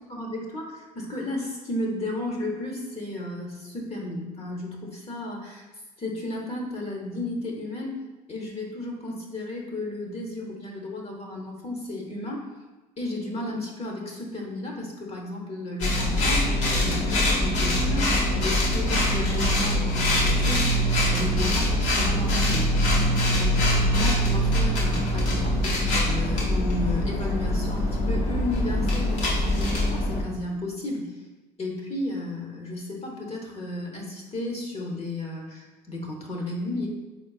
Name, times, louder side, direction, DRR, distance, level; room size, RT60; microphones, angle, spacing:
voice 1, 0.1-5.6 6.0-8.0 8.3-12.5 13.0-16.5 16.8-22.7 23.3-31.2 31.6-36.9, left 1 dB, 30° left, 0 dB, 0.9 m, -33 dB
sound 1, 15.8-30.2, left 1 dB, 70° left, 1.2 m, -23 dB
4.1 x 3.7 x 2.3 m, 1.2 s
hypercardioid pair, 70°, 21 cm